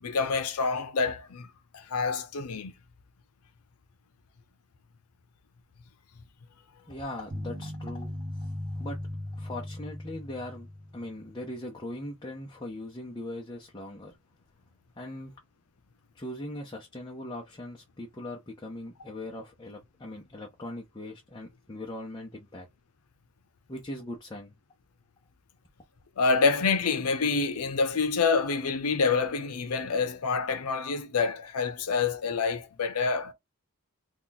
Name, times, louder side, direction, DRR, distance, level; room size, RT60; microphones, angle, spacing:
voice 1, 0.0-1.5 1.7-2.7 26.2-33.3, left 4 dB, 90° left, 0.6 m, -27 dB
voice 2, 6.9-9.0 9.3-14.2 15.0-15.3 16.1-22.7 23.7-24.5, left 1 dB, 20° left, 0.6 m, -40 dB
sound 1, 7.3-11.5, left 1 dB, 35° right, 1.2 m, -38 dB
2.9 x 2.3 x 3.9 m
head